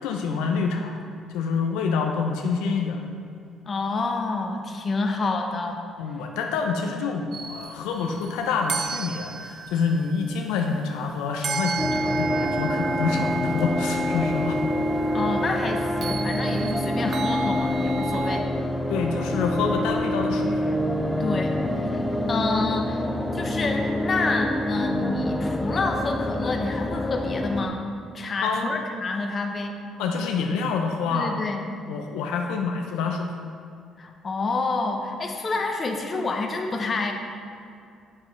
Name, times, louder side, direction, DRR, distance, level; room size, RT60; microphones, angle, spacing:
voice 1, 0.0-1.0 1.3-3.0 6.0-14.6 18.9-20.6 28.4-28.8 30.0-31.6 31.9-33.3, left 5 dB, 85° left, 2 dB, 0.4 m, -27 dB
voice 2, 3.7-5.8 15.1-18.5 21.2-22.0 22.3-23.0 23.3-27.8 28.1-29.8 31.1-31.7 34.0-37.1, left 3 dB, 40° left, 4 dB, 0.8 m, -28 dB
sound 1, 7.3-18.4, right 4 dB, 55° right, 0.5 m, -33 dB
sound 2, 11.8-27.7, left 1 dB, 10° left, 0.5 m, -26 dB
7.4 x 6.4 x 3.2 m, 2.3 s
supercardioid pair, 75°, 0 cm